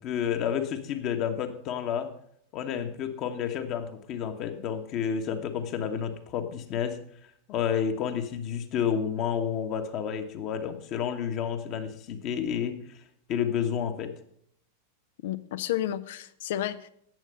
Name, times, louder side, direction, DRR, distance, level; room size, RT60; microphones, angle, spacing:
voice 1, 0.0-2.1 2.5-7.0 7.5-12.8 13.3-14.1, left 8 dB, 40° left, 6 dB, 1.3 m, -30 dB
voice 2, 15.2-16.9, left 12 dB, 55° left, 15 dB, 0.6 m, -31 dB
11.0 x 8.4 x 5.4 m, 0.68 s
figure-of-eight pair, 90°, 0 cm